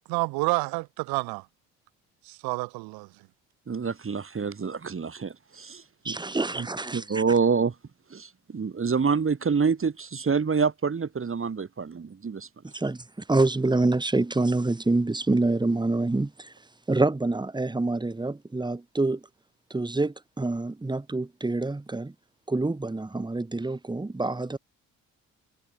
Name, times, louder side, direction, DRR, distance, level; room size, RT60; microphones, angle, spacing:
voice 1, 0.1-1.4 2.2-3.1, right 25 dB, 80° right, 1.2 m, -29 dB
voice 2, 3.7-6.2 6.6-6.7 6.9-7.7 8.1-12.5, right 5 dB, 35° right, 3.3 m, -27 dB
voice 3, 6.0-7.2 12.7-13.0 13.3-16.5 16.9-19.2 19.7-22.1 22.5-24.6, right 2 dB, 10° right, 1.4 m, -26 dB
hypercardioid pair, 55°, 36 cm